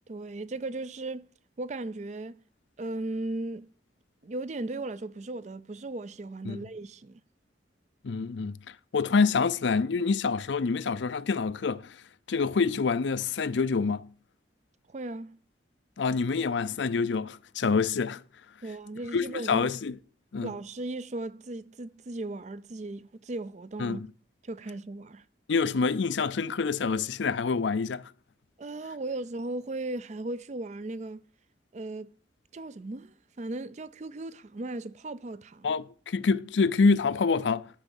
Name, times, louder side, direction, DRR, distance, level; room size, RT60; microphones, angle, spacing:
voice 1, 0.1-1.3 1.6-2.4 2.8-3.7 4.2-7.2 14.9-15.4 18.6-19.7 20.4-24.0 24.4-25.2 28.6-31.2 31.7-32.1 32.5-35.7, right 2 dB, 40° right, 0.5 m, -37 dB
voice 2, 8.0-8.6 8.9-11.9 12.3-14.0 16.0-18.2 19.1-20.0 20.3-20.5 23.8-24.1 25.5-28.1 35.6-37.7, left 4 dB, 75° left, 0.5 m, -26 dB
12.5 x 4.6 x 7.1 m
head